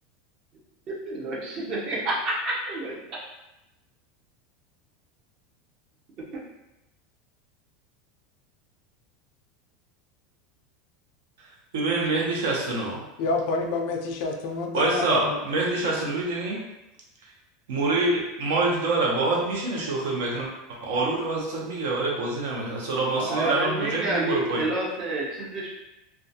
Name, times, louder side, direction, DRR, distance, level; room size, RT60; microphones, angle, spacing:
voice 1, 0.9-3.0 23.2-25.7, right 2 dB, 30° right, -4 dB, 0.6 m, -29 dB
voice 2, 11.7-13.0 14.7-16.6 17.7-24.7, right 2 dB, 80° right, -2 dB, 0.7 m, -26 dB
voice 3, 13.2-15.4, left 3 dB, 50° left, 3 dB, 0.3 m, -28 dB
2.4 x 2.2 x 2.6 m, 0.93 s
supercardioid pair, 175°, 0 cm